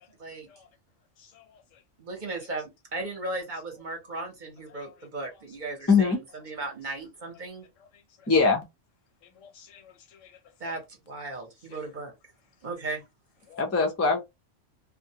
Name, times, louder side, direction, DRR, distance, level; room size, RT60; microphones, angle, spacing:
voice 1, 1.2-1.8 2.4-2.5 4.7-5.1 7.8-8.3 9.2-10.8 11.7-11.8 13.5-13.7, left 7 dB, 90° left, 1.0 m, -54 dB
voice 2, 2.0-7.7 10.6-12.1 12.6-13.0, right 2 dB, 45° right, 0.8 m, -36 dB
voice 3, 5.9-6.2 8.3-8.6 13.6-14.2, left 4 dB, 25° left, 0.3 m, -21 dB
2.4 x 2.1 x 2.7 m
omnidirectional pair, 1.3 m